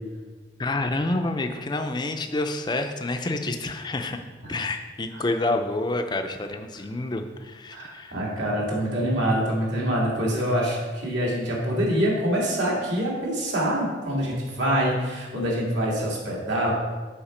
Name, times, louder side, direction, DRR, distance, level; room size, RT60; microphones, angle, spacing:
voice 1, 0.6-4.2 4.5-8.2, left 2 dB, 20° left, 6 dB, 0.5 m, -28 dB
voice 2, 7.7-16.8, equal, 70° right, -4 dB, 2.2 m, -25 dB
7.2 x 5.0 x 5.0 m, 1.4 s
head